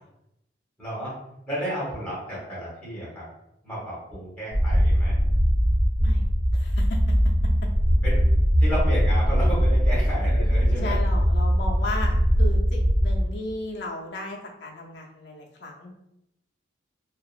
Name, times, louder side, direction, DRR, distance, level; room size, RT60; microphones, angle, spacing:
voice 1, 0.8-1.1 1.5-3.3 3.6-5.1 8.0-8.2 8.6-10.9, equal, 5° left, -8 dB, 1.2 m, -32 dB
voice 2, 1.6-2.1 6.0-6.2 6.5-7.1 10.7-15.9, left 2 dB, 60° left, 0 dB, 0.5 m, -35 dB
sound 1, 4.5-13.2, equal, 80° right, 0.7 m, -21 dB
2.8 x 2.3 x 2.4 m, 0.83 s
head